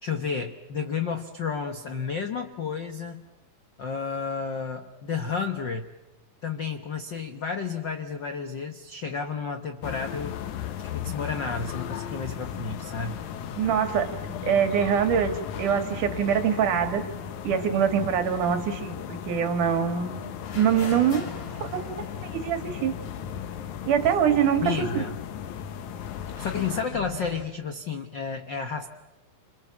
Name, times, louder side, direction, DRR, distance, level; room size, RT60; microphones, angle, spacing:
voice 1, 0.0-3.2 3.8-5.9 6.4-10.4 10.9-13.2 24.6-25.1 26.4-28.9, left 5 dB, 85° left, 6 dB, 1.0 m, -31 dB
sound 1, 9.8-26.8, left 9 dB, 65° left, 2.3 m, -36 dB
voice 2, 13.6-14.1 14.4-17.0 17.4-20.3 20.5-21.3 21.6-23.0 23.9-25.0, right 8 dB, 65° right, 7 dB, 3.2 m, -24 dB
sound 2, 20.4-24.2 24.5-24.6 25.6-27.5, left 3 dB, 50° left, 3.7 m, -43 dB
29.5 x 27.5 x 7.2 m, 0.97 s
omnidirectional pair, 4.1 m